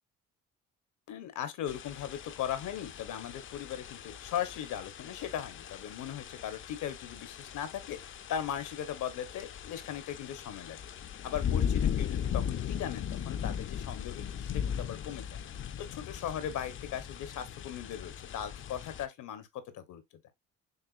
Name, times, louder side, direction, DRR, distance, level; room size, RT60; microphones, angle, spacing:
voice 1, 1.1-10.8 11.2-15.2 15.8-20.0, left 10 dB, 80° left, 0.9 m, -38 dB
sound 1, 1.7-19.1, left 8 dB, 40° left, 0.4 m, -38 dB
6.5 x 2.5 x 2.4 m
cardioid pair, 90°, 30 cm